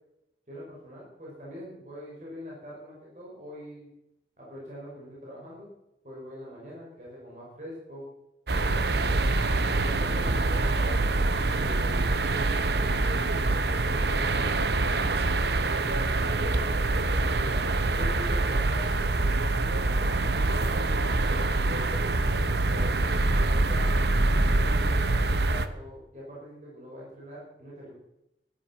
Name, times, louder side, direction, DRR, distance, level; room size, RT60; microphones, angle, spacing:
voice 1, 0.5-3.9 4.4-5.7 6.0-8.1 8.5-9.3 9.7-13.3 13.9-14.9 15.6-17.6 17.8-20.1 20.5-22.0 22.4-24.1 24.6-27.9, equal, 40° right, -5 dB, 5.8 m, -43 dB
sound 1, 8.5-25.7, right 2 dB, 70° right, 0.9 m, -25 dB
14.0 x 12.0 x 6.0 m, 0.87 s
head